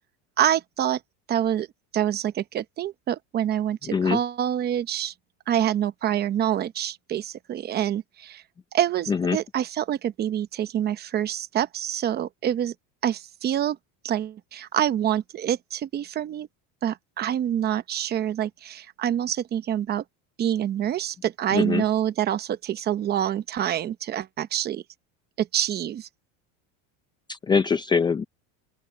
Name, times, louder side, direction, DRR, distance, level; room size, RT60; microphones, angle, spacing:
voice 1, 0.4-1.0 1.3-1.7 1.9-5.1 5.5-8.4 8.7-12.7 13.0-13.8 14.0-16.5 16.8-20.0 20.4-24.8 25.4-26.1, right 10 dB, 30° right, 0.8 m, -26 dB
voice 2, 21.5-21.8 27.3-28.2, left 5 dB, 15° left, 0.5 m, -23 dB
open air
cardioid pair, 165°, 34 cm